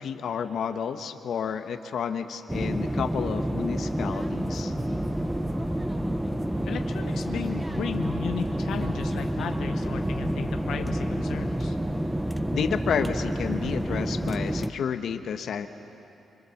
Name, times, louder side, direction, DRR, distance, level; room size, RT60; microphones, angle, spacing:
voice 1, 0.0-4.7 12.5-15.7, left 7 dB, 60° left, 8 dB, 1.0 m, -30 dB
sound 1, 2.5-14.7, right 1 dB, 5° right, 0.6 m, -29 dB
sound 2, 3.8-13.8, right 2 dB, 35° right, 2.2 m, -46 dB
voice 2, 6.7-11.8, left 8 dB, 80° left, 6 dB, 0.8 m, -35 dB
25.5 x 25.0 x 7.1 m, 2.9 s
wide cardioid pair, 175°, 0 cm